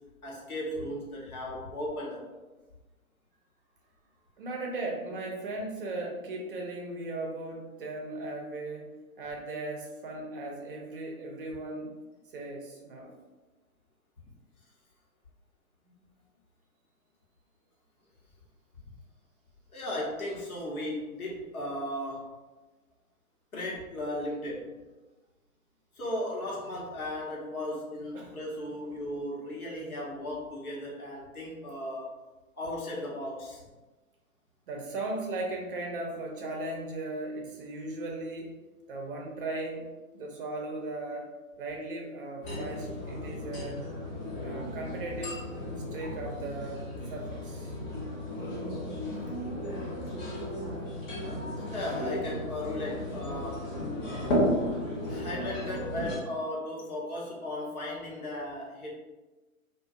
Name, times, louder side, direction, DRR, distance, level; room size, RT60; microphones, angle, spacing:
voice 1, 0.2-2.3 19.7-22.4 23.5-24.7 25.9-32.2 32.5-33.6 51.6-53.7 55.1-58.9, left 1 dB, 85° left, -4 dB, 1.0 m, -36 dB
voice 2, 4.4-8.9 9.2-12.0 12.3-13.1 28.1-28.4 34.7-38.5 38.9-41.3 41.6-43.8 44.4-45.5 45.9-46.8 47.1-47.7, right 2 dB, 40° right, 0 dB, 0.5 m, -37 dB
sound 1, 42.4-56.2, left 1 dB, 35° left, 0.8 m, -34 dB
2.5 x 2.2 x 2.4 m, 1.2 s
hypercardioid pair, 130°, 43 cm